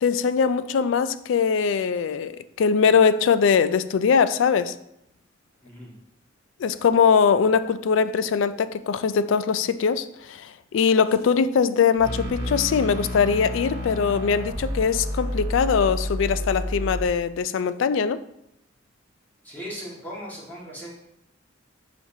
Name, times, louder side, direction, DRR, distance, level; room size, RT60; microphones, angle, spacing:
voice 1, 0.0-4.7 6.6-18.2, left 6 dB, 75° left, 0.3 m, -21 dB
sound 1, 12.0-17.0, left 1 dB, 55° right, 2.0 m, -30 dB
voice 2, 19.4-20.9, equal, 10° left, 1.7 m, -37 dB
7.7 x 5.1 x 2.7 m
head